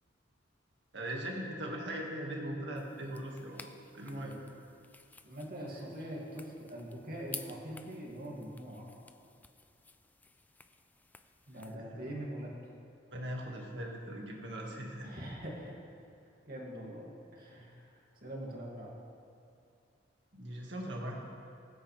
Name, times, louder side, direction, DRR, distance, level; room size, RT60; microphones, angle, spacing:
voice 1, 0.9-4.4 11.5-12.1 13.1-15.2 20.3-21.1, right 1 dB, 65° right, -1 dB, 2.0 m, -40 dB
sound 1, 2.8-11.8, left 3 dB, 10° left, 0.3 m, -53 dB
voice 2, 5.2-8.9 11.5-12.5 15.0-15.8 16.5-17.1 17.3-18.9, equal, 50° right, -3 dB, 2.4 m, -43 dB
21.5 x 9.6 x 3.4 m, 2.5 s
head